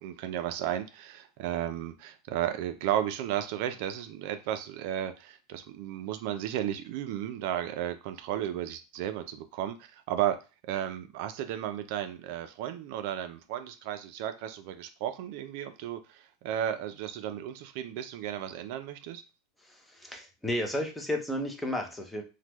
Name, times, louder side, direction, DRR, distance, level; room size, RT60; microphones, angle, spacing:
voice 1, 0.0-10.4 10.7-19.2, right 11 dB, 60° right, 9 dB, 0.3 m, -34 dB
voice 2, 19.6-22.2, left 1 dB, 5° left, 3 dB, 0.6 m, -33 dB
3.2 x 2.1 x 3.0 m, 0.30 s
supercardioid pair, 155°, 0 cm